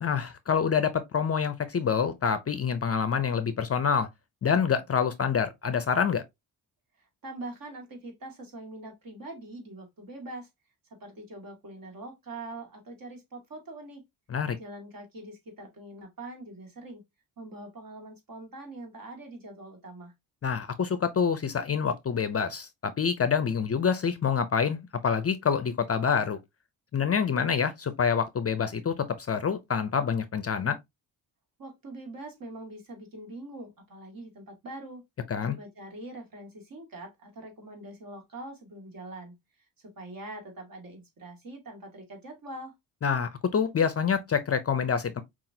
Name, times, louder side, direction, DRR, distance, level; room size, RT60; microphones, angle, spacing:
voice 1, 0.0-4.1 4.4-6.2 14.3-14.6 20.4-26.4 26.9-28.9 29.3-30.8 35.3-35.6 43.0-45.2, left 6 dB, 35° left, 0.5 m, -26 dB
voice 2, 7.0-10.5 11.0-14.0 14.6-17.0 17.4-20.1 31.6-35.0 35.4-39.3 39.8-42.7, right 2 dB, 50° right, 1.8 m, -43 dB
5.7 x 2.5 x 2.6 m
cardioid pair, 100°, 42 cm